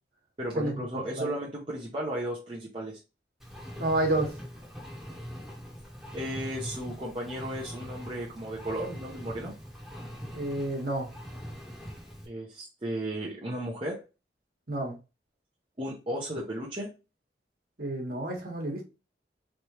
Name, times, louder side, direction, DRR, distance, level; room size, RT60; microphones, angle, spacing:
voice 1, 0.4-3.0 6.1-9.5 12.2-14.0 15.8-16.9, right 1 dB, 30° right, -4 dB, 0.8 m, -35 dB
Engine, 3.4-12.3, equal, 5° right, 1.1 m, -42 dB
voice 2, 3.8-4.3 10.3-11.1 14.7-14.9 17.8-18.8, right 1 dB, 55° right, 0 dB, 1.5 m, -29 dB
4.2 x 3.3 x 3.0 m, 0.30 s
head